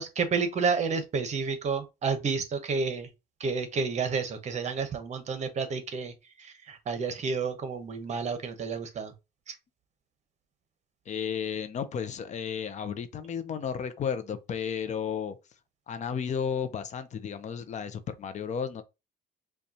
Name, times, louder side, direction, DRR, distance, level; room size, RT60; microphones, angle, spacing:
voice 1, 0.0-3.1 3.4-9.1 9.5-9.6, right 5 dB, 45° right, 0.9 m, -30 dB
voice 2, 11.1-15.4 15.9-18.8, left 7 dB, 45° left, 0.6 m, -33 dB
5.3 x 2.3 x 2.8 m
cardioid pair, 110°, 17 cm